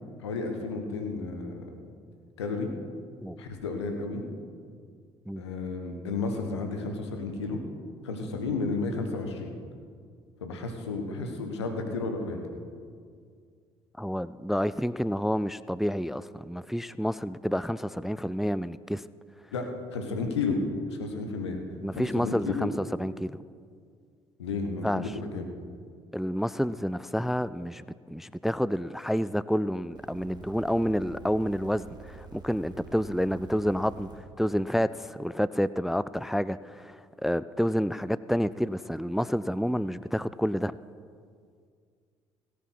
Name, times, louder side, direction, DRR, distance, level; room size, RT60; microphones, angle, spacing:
voice 1, 0.2-1.7 2.4-2.7 3.4-4.2 5.4-7.6 8.0-9.6 10.4-12.4 19.5-20.6 20.9-21.6 21.9-22.7 24.4-25.5, left 3 dB, 85° left, 5 dB, 1.3 m, -32 dB
voice 2, 14.0-19.0 21.8-23.4 24.8-25.0 26.1-40.8, equal, ahead, 17 dB, 0.3 m, -29 dB
sound 1, 29.9-34.2 35.1-35.2, right 4 dB, 30° right, 2.5 m, -47 dB
17.0 x 8.4 x 5.9 m, 2.1 s
figure-of-eight pair, 50°, 14 cm